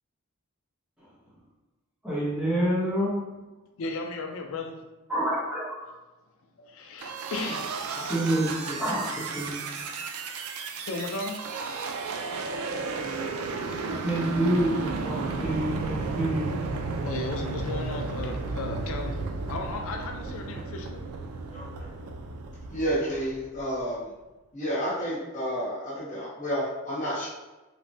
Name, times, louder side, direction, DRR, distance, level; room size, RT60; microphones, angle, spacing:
voice 1, 2.0-3.1 5.1-5.9 7.9-9.0 9.3-9.6 13.9-16.5, right 1 dB, 5° right, -12 dB, 0.8 m, -27 dB
voice 2, 3.8-4.8 6.6-8.0 10.8-11.6 17.0-19.2 19.5-21.0, left 3 dB, 70° left, 4 dB, 0.4 m, -35 dB
sound 1, 7.0-23.6, right 3 dB, 85° right, 0.3 m, -33 dB
voice 3, 22.7-24.1 24.5-27.3, equal, 35° left, -7 dB, 1.0 m, -30 dB
3.2 x 2.1 x 2.6 m, 1.1 s
head